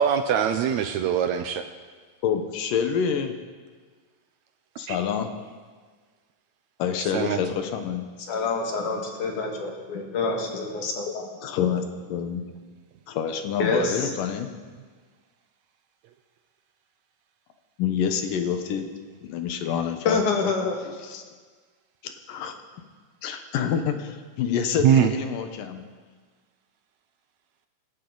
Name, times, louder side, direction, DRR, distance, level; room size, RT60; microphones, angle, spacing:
voice 1, 0.0-1.6 4.9-5.0 7.1-7.4 24.8-25.1, right 8 dB, 75° right, 8 dB, 1.8 m, -22 dB
voice 2, 2.2-3.3 4.8-5.3 6.8-8.0 11.4-12.4 13.1-14.5 17.8-18.9 19.2-20.2 20.9-21.3 22.0-22.5 23.2-25.9, left 8 dB, 90° left, 7 dB, 2.8 m, -27 dB
voice 3, 8.3-11.3 13.6-14.1 20.0-20.8, left 4 dB, 70° left, 1 dB, 3.4 m, -26 dB
28.5 x 11.5 x 4.0 m, 1.5 s
omnidirectional pair, 3.7 m